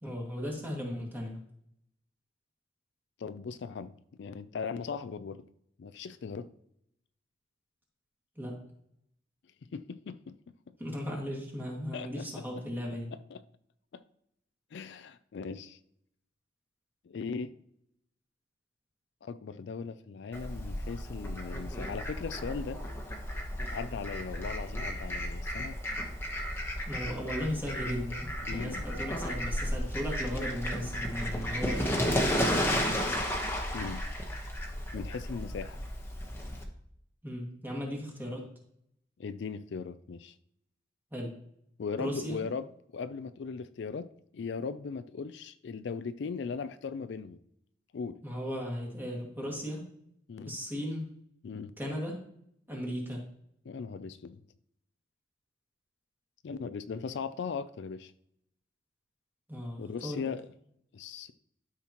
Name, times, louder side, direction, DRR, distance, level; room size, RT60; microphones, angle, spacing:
voice 1, 0.0-1.4 8.4-8.6 10.8-13.1 26.9-33.3 37.2-38.5 41.1-41.3 42.0-42.4 48.2-49.9 50.4-51.1 51.8-52.2 52.7-53.2 59.5-60.3, equal, 10° right, 2.0 m, -36 dB
voice 2, 3.2-5.5 5.8-6.5 9.7-10.4 11.9-12.2 13.3-13.4 13.9-14.0 14.7-15.8 17.0-17.5 19.2-22.8 23.6-25.8 28.4-28.8 33.7-34.1 34.9-35.8 39.2-40.4 41.8-42.7 42.9-47.4 47.9-48.2 50.3-50.5 51.4-51.7 53.6-54.4 56.4-58.1 59.8-60.5 60.9-61.3, left 5 dB, 65° left, 0.4 m, -38 dB
Fowl, 20.3-36.6, equal, 15° left, 1.1 m, -33 dB
12.0 x 5.8 x 3.0 m
head